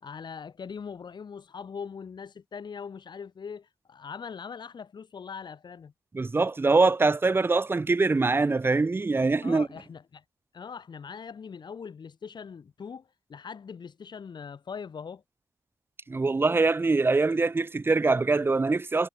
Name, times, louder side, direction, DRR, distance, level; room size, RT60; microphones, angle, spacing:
voice 1, 0.0-5.9 9.4-10.2 10.5-15.2, left 6 dB, 60° left, 3.5 m, -41 dB
voice 2, 6.1-9.7 16.1-19.1, right 3 dB, 25° right, 0.8 m, -23 dB
cardioid pair, 90°, 9 cm